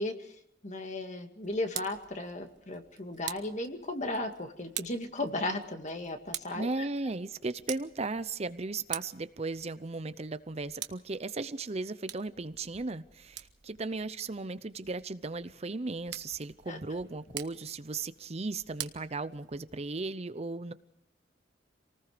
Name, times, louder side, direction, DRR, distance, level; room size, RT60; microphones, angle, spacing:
voice 1, 0.0-6.7 16.7-17.0, left 2 dB, 40° left, 2.1 m, -36 dB
Tick, 1.4-19.9, right 12 dB, 70° right, 1.3 m, -46 dB
voice 2, 6.5-20.7, right 3 dB, 35° right, 0.7 m, -36 dB
27.5 x 19.5 x 5.1 m
head